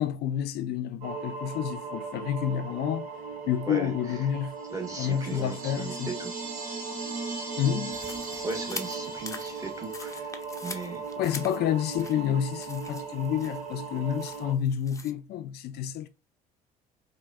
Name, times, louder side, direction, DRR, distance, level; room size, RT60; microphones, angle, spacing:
voice 1, 0.0-3.1 3.5-4.6 5.0-6.1 7.6-8.0 11.2-16.1, left 10 dB, 60° left, 0.4 m, -29 dB
sound 1, 1.0-14.5, right 5 dB, 75° right, 0.9 m, -38 dB
voice 2, 3.7-4.2 4.7-6.3 8.4-10.3 10.6-11.0, right 3 dB, 15° right, 1.4 m, -37 dB
sound 2, 4.7-10.1, right 3 dB, 45° right, 1.3 m, -39 dB
sound 3, 7.9-15.1, left 3 dB, 15° left, 0.6 m, -44 dB
4.6 x 2.2 x 2.4 m
hypercardioid pair, 65°, 19 cm